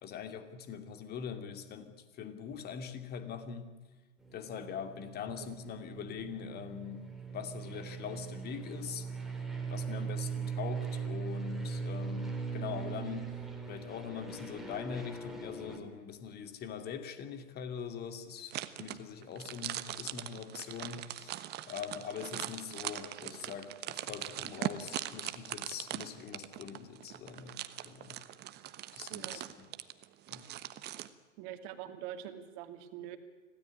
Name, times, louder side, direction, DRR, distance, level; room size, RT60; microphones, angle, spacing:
voice 1, 0.0-3.8 4.3-9.1 9.7-13.4 13.7-28.2 28.9-29.7 30.3-30.5, left 7 dB, 25° left, 9 dB, 2.5 m, -43 dB
sound 1, 4.2-15.8, right 5 dB, ahead, 3.9 m, -40 dB
sound 2, 18.5-31.1, right 14 dB, 25° right, 1.2 m, -41 dB
voice 2, 29.1-29.4 31.4-33.2, right 11 dB, 40° right, 8 dB, 2.6 m, -44 dB
25.5 x 17.0 x 9.8 m, 1.3 s
hypercardioid pair, 115°, 38 cm